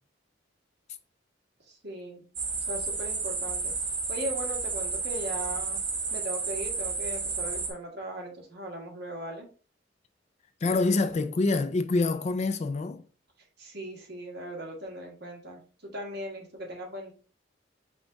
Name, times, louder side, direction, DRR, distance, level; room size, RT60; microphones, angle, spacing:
voice 1, 1.7-2.2 2.7-3.7 4.1-5.8 6.1-9.5 13.6-17.1, right 1 dB, 60° right, 1.4 m, -38 dB
sound 1, 2.4-7.7, right 4 dB, 90° right, 1.3 m, -32 dB
voice 2, 10.6-13.0, left 3 dB, 35° left, 0.4 m, -26 dB
5.1 x 2.4 x 3.9 m
head